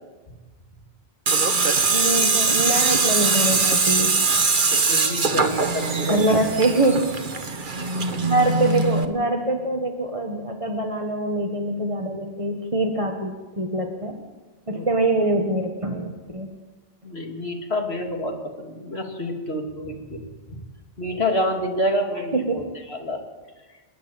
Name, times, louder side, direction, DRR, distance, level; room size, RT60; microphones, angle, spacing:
Tools, 1.3-9.0, right 4 dB, 55° right, 1.5 m, -22 dB
voice 1, 1.9-4.1 6.1-7.1 8.2-14.2 14.7-16.5 22.3-22.7, right 2 dB, 30° right, 2 dB, 1.6 m, -24 dB
voice 2, 4.7-6.4 14.7-14.8 17.0-20.2 21.0-22.6 22.9-23.2, left 1 dB, 85° left, 2 dB, 3.1 m, -28 dB
29.5 x 10.5 x 8.9 m, 1.3 s
omnidirectional pair, 1.0 m